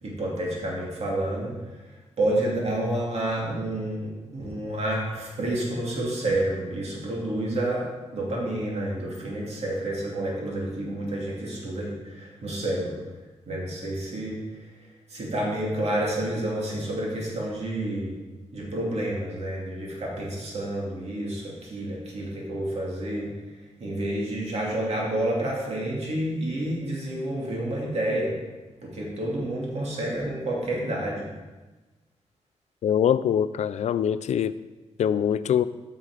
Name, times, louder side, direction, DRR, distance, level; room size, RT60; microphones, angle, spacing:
voice 1, 0.0-7.9 8.1-13.0 13.5-14.4 15.1-18.2 18.5-23.3 23.8-28.4 28.8-31.3, right 1 dB, 60° right, -3 dB, 2.6 m, -29 dB
voice 2, 32.8-34.5 35.0-35.6, left 9 dB, 70° left, 15 dB, 0.4 m, -23 dB
8.4 x 6.2 x 5.0 m, 1.2 s
wide cardioid pair, 120°, 12 cm